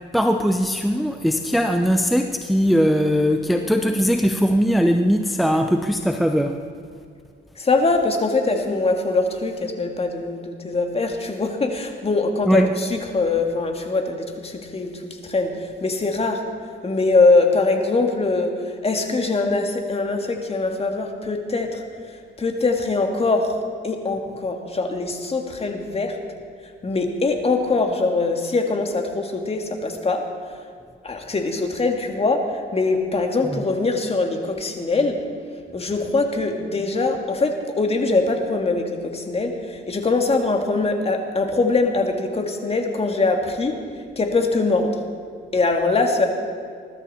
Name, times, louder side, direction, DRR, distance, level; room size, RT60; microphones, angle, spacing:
voice 1, 0.1-6.6 12.4-12.8 33.4-33.6, equal, ahead, 5 dB, 0.7 m, -20 dB
voice 2, 7.6-14.9 15.2-16.4 16.8-18.5 18.8-21.8 22.4-23.5 23.8-26.2 26.8-30.2 31.0-35.2 35.7-43.7 44.2-44.9 45.5-46.3, left 3 dB, 30° left, 4 dB, 2.1 m, -22 dB
21.0 x 12.5 x 4.3 m, 2.2 s
cardioid pair, 90°, 20 cm